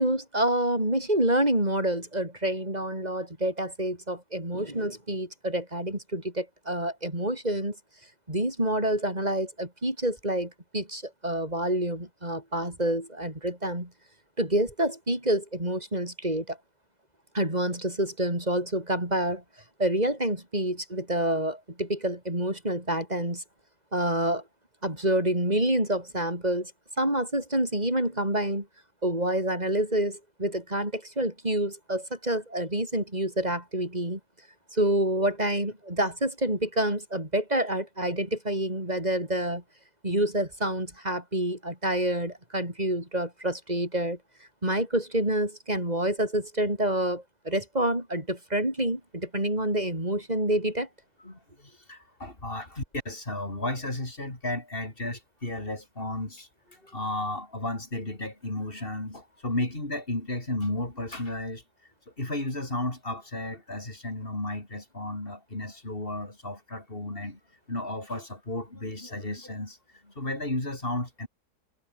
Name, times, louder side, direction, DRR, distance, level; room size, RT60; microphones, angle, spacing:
voice 1, 0.0-7.8 8.3-13.9 14.4-16.6 17.3-19.4 19.8-23.4 23.9-24.4 24.8-26.7 27.0-28.7 29.0-34.2 34.7-39.6 40.0-44.2 44.6-50.9, right 1 dB, 25° right, 7.1 m, -27 dB
voice 2, 51.2-61.6 62.2-67.4 67.7-69.8 70.0-71.3, left 2 dB, 35° left, 4.7 m, -33 dB
omnidirectional pair, 1.7 m